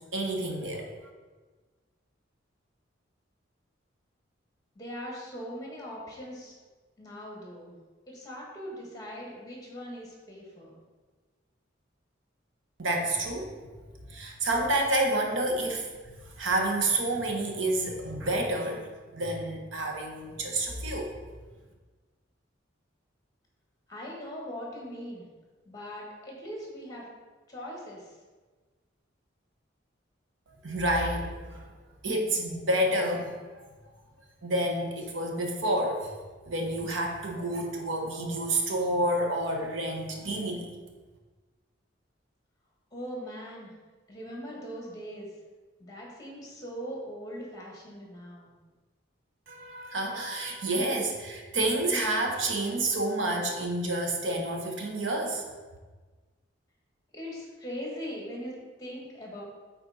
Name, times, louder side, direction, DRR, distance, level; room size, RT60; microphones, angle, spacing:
voice 1, 0.1-0.9 12.8-13.6 14.1-15.9 16.2-21.1 30.5-31.7 32.0-33.7 34.4-36.1 36.5-40.7 49.5-55.4, right 1 dB, 85° right, 1 dB, 1.2 m, -29 dB
voice 2, 4.8-6.6 7.0-7.7 8.1-10.7 23.9-25.2 25.7-27.1 27.5-28.2 42.9-43.7 44.1-45.3 45.8-48.5 57.1-59.4, equal, 20° left, -2 dB, 1.7 m, -40 dB
8.6 x 4.3 x 4.1 m, 1.3 s
head